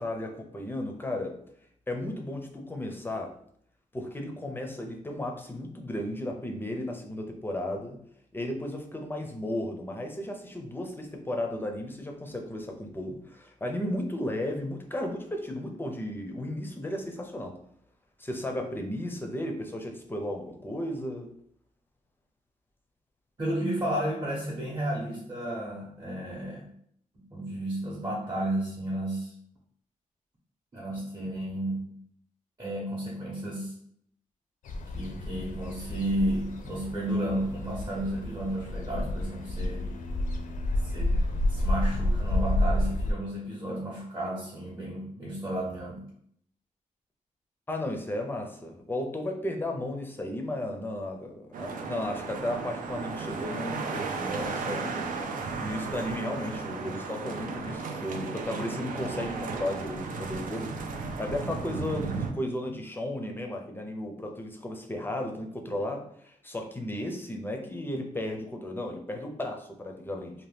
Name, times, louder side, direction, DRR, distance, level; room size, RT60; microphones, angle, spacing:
voice 1, 0.0-1.3 1.9-3.3 3.9-8.0 8.3-17.5 18.2-21.3 47.7-55.1 55.6-60.7 61.2-70.3, left 1 dB, 15° left, 3 dB, 0.4 m, -34 dB
voice 2, 23.4-26.7 27.1-29.3 30.7-31.9 32.6-33.7 34.9-39.9 40.8-41.2 41.5-46.0, right 1 dB, 25° right, -6 dB, 0.7 m, -32 dB
sound 1, 34.7-43.1, left 1 dB, 75° left, 0.4 m, -30 dB
sound 2, 51.5-62.3, right 4 dB, 85° right, 0.4 m, -35 dB
2.7 x 2.2 x 3.3 m, 0.66 s
wide cardioid pair, 125°, 14 cm